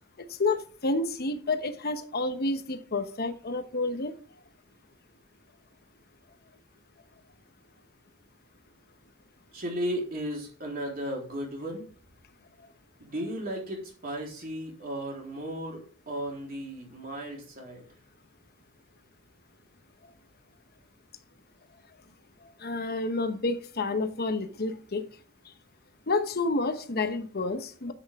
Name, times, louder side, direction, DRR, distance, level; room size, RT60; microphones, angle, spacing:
voice 1, 0.2-4.1 22.6-25.1 26.1-27.9, left 3 dB, 50° left, 1.0 m, -29 dB
voice 2, 9.5-11.8 13.0-15.8 16.1-17.9, equal, 45° right, 3.7 m, -35 dB
9.7 x 8.0 x 3.6 m
head